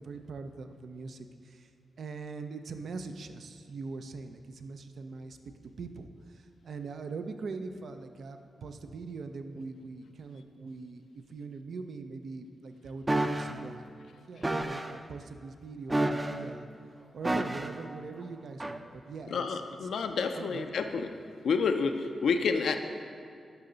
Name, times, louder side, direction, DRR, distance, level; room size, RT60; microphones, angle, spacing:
voice 1, 0.0-1.7 2.0-5.4 5.8-13.9 14.3-16.7 17.1-20.9, right 4 dB, 70° right, 7 dB, 0.5 m, -42 dB
sound 1, 13.1-13.5 14.4-14.9 15.9-16.5 17.2-17.8 18.6-18.8, right 1 dB, 25° right, 0.5 m, -29 dB
voice 2, 19.3-21.1 21.4-22.8, left 5 dB, 80° left, 7 dB, 0.5 m, -29 dB
11.5 x 5.7 x 3.9 m, 2.4 s
cardioid pair, 65°, 0 cm